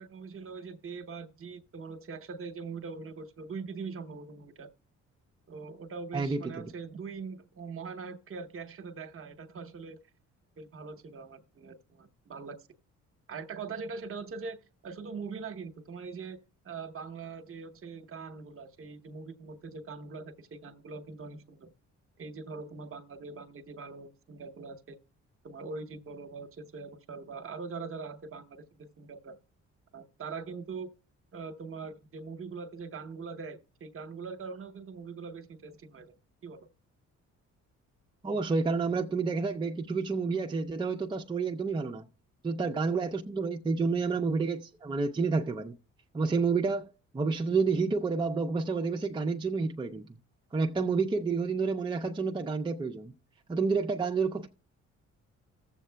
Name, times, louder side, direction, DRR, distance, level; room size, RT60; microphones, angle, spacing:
voice 1, 0.0-4.7 5.5-10.0 10.6-12.6 13.3-14.6 14.8-16.4 16.6-21.7 22.2-25.0 25.4-29.4 29.9-30.9 31.3-36.1 36.4-36.7, right 4 dB, 45° right, 0.9 m, -42 dB
voice 2, 6.1-6.6 38.2-42.1 42.4-45.8 46.1-50.1 50.5-53.1 53.5-54.5, right 4 dB, 15° right, 0.5 m, -29 dB
18.0 x 7.4 x 2.2 m
cardioid pair, 90°, 30 cm